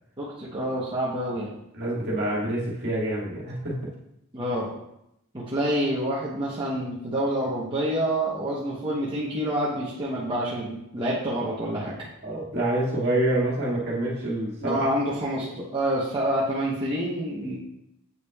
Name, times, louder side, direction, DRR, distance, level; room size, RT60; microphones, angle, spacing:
voice 1, 0.2-1.5 4.3-4.7 5.3-11.9 14.6-17.6, right 1 dB, 20° right, -7 dB, 0.9 m, -27 dB
voice 2, 1.7-3.7 12.2-14.9, right 1 dB, 50° right, -5 dB, 1.9 m, -27 dB
8.0 x 5.8 x 2.3 m, 0.82 s
head